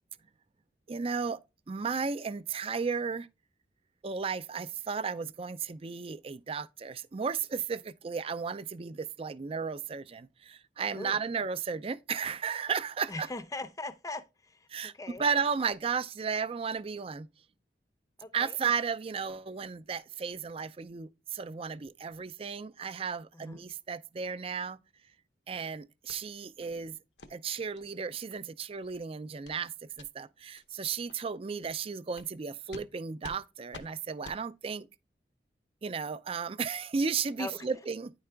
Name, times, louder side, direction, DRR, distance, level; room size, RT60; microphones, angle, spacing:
voice 1, 0.9-1.4 1.7-3.3 4.0-13.3 14.7-17.3 18.3-24.8 25.5-27.0 27.3-34.9 35.8-38.1, right 5 dB, 35° right, 0.4 m, -34 dB
voice 2, 13.1-15.2 18.2-18.7 23.3-23.6 37.4-37.7, left 2 dB, 20° left, 0.5 m, -41 dB
sound 1, 26.1-26.2 26.6-26.8 27.2-27.3 27.8-27.9 28.3-28.4 28.8-29.0 29.4-29.6 29.9-30.1 30.6-30.7 31.1-31.2 31.6-31.8 32.2-32.3 32.7-32.9 33.2-33.4 33.7-33.9 34.2-34.4, left 2 dB, 85° left, 0.8 m, -48 dB
9.6 x 4.7 x 3.3 m
head